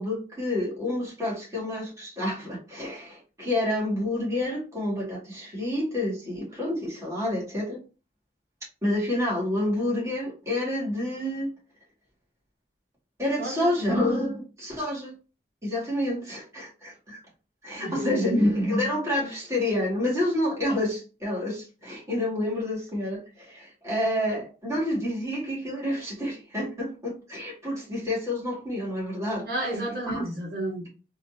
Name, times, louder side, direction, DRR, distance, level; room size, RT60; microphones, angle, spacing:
voice 1, 0.0-7.8 8.8-11.5 13.2-15.2 15.6-17.2 17.6-29.5 30.1-30.2, left 1 dB, 15° right, 2.0 m, -28 dB
voice 2, 13.4-13.7 17.8-18.3 29.4-30.9, right 1 dB, 60° right, 1.5 m, -32 dB
4.0 x 2.8 x 2.8 m
head